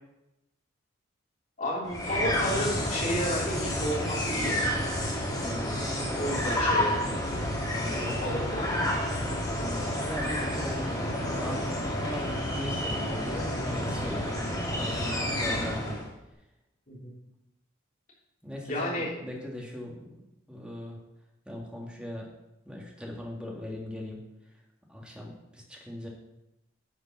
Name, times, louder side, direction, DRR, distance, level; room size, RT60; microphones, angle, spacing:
voice 1, 1.6-4.6 6.1-7.2 8.2-8.7 16.9-17.1 18.7-19.1, equal, 40° left, -5 dB, 3.4 m, -31 dB
sound 1, 1.8-16.1, left 1 dB, 20° left, 2.1 m, -30 dB
voice 2, 5.4-6.3 7.6-8.2 9.5-10.9 11.4-14.3 14.8-16.0 18.4-20.1 20.5-21.0 21.4-22.3 22.6-24.2 24.9-26.1, left 1 dB, 5° right, -1 dB, 1.7 m, -39 dB
10.0 x 5.1 x 5.9 m, 0.92 s
head